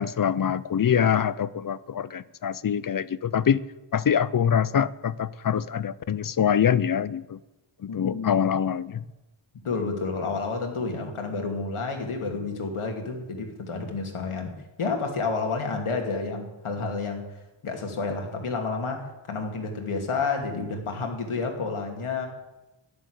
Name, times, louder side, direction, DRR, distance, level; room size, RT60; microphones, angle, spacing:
voice 1, 0.0-3.6 3.9-7.4 7.8-9.1, left 8 dB, 45° left, 0.5 m, -24 dB
voice 2, 7.9-8.4 9.6-14.5 14.8-17.2 17.6-22.3, left 4 dB, 85° left, 2.5 m, -30 dB
11.0 x 10.5 x 8.0 m
wide cardioid pair, 145°, 48 cm